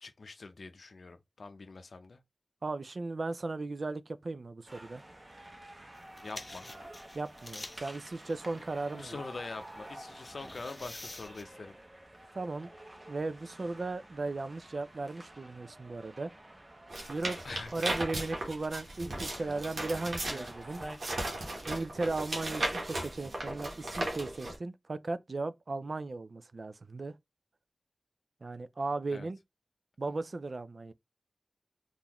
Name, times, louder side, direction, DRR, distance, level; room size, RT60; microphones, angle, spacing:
voice 1, 0.0-2.2 6.2-6.7 8.9-11.7 17.4-18.0 19.4-19.6 29.1-29.3, left 3 dB, 90° left, 0.5 m, -44 dB
voice 2, 2.6-5.0 7.1-9.2 12.3-12.7 13.1-16.3 17.1-17.4 17.7-20.8 21.7-27.1 28.4-29.4 30.0-30.9, right 3 dB, 70° right, 0.3 m, -36 dB
sound 1, 4.7-21.0, right 1 dB, 40° right, 0.8 m, -50 dB
sound 2, 5.9-11.4, left 2 dB, 40° left, 0.5 m, -49 dB
sound 3, 16.9-24.6, right 1 dB, 90° right, 1.0 m, -36 dB
3.7 x 2.5 x 2.9 m
wide cardioid pair, 75°, 0 cm